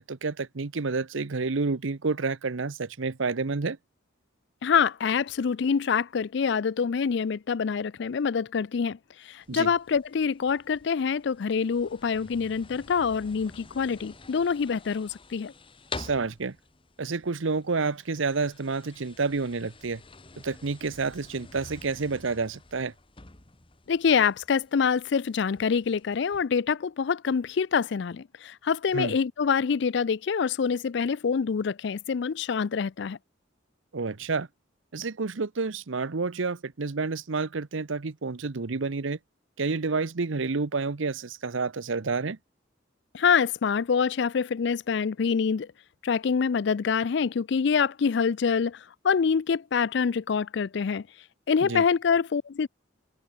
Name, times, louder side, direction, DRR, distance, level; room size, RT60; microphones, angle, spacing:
voice 1, 0.0-3.8 9.5-9.7 15.9-16.6 17.0-20.0 20.4-22.9 28.9-29.1 33.9-34.5 34.9-39.2 39.6-42.4 51.6-51.8, right 4 dB, 80° right, 0.8 m, -29 dB
voice 2, 4.6-9.0 9.2-15.5 23.9-33.2 43.1-45.7 46.0-48.8 49.0-51.0 51.5-52.7, left 6 dB, 60° left, 0.4 m, -26 dB
sound 1, 9.4-26.4, left 3 dB, 25° left, 1.6 m, -48 dB
head